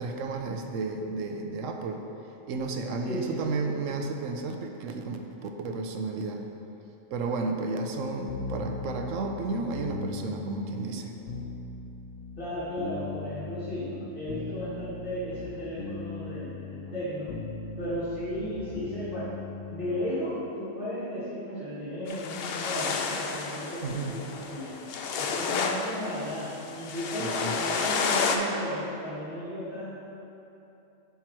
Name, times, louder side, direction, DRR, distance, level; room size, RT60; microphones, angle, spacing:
voice 1, 0.0-2.0 2.5-6.4 7.1-11.1 23.8-24.2 27.2-27.5, right 3 dB, 80° right, 4 dB, 1.0 m, -32 dB
voice 2, 3.0-3.5 12.4-17.3 17.8-19.3 19.7-24.8 25.2-30.0, equal, 45° left, -14 dB, 1.8 m, -35 dB
sound 1, 8.3-20.2, left 3 dB, 85° left, 1.0 m, -39 dB
sound 2, 22.1-28.4, left 5 dB, 60° left, 0.7 m, -31 dB
10.0 x 3.6 x 4.4 m, 2.9 s
omnidirectional pair, 1.3 m